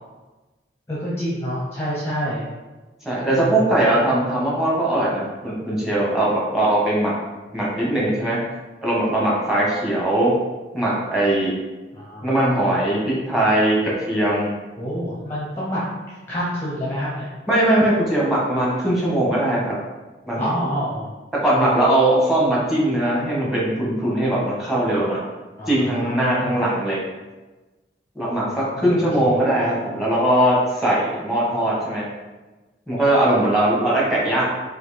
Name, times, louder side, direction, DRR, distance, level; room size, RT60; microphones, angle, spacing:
voice 1, 0.9-2.5 3.3-3.8 11.9-12.5 14.8-15.8 16.1-17.3 20.4-21.1 25.6-26.6 28.4-29.5, equal, 15° left, -7 dB, 0.7 m, -28 dB
voice 2, 3.0-7.1 7.5-8.4 8.8-10.3 10.7-11.5 12.2-14.5 17.5-19.8 20.3-20.4 21.4-25.2 25.7-27.0 28.1-32.0 32.9-34.4, right 1 dB, ahead, -6 dB, 1.1 m, -20 dB
4.3 x 2.7 x 4.1 m, 1.2 s
head